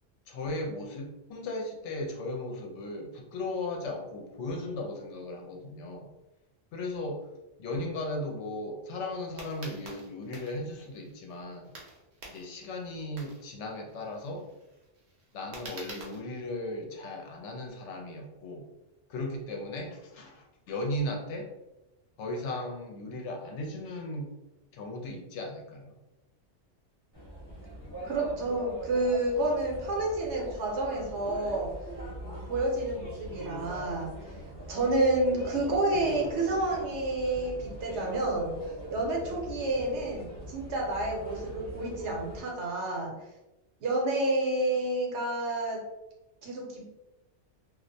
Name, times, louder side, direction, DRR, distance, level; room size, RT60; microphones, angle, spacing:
voice 1, 0.3-6.1 6.7-7.3 7.6-11.7 12.3-14.5 15.3-18.7 19.1-21.5 22.2-24.3 24.7-25.9, left 1 dB, 75° left, 1 dB, 0.9 m, -36 dB
sound 1, 9.4-16.2, right 2 dB, 50° right, 0.6 m, -47 dB
sound 2, 27.1-42.4, right 1 dB, 25° left, 0.8 m, -41 dB
voice 2, 28.0-31.7 32.5-34.1 34.7-38.6 38.9-43.1 43.8-45.8 46.4-46.9, right 2 dB, 70° right, -1 dB, 0.9 m, -29 dB
2.4 x 2.1 x 2.6 m, 0.98 s
omnidirectional pair, 1.2 m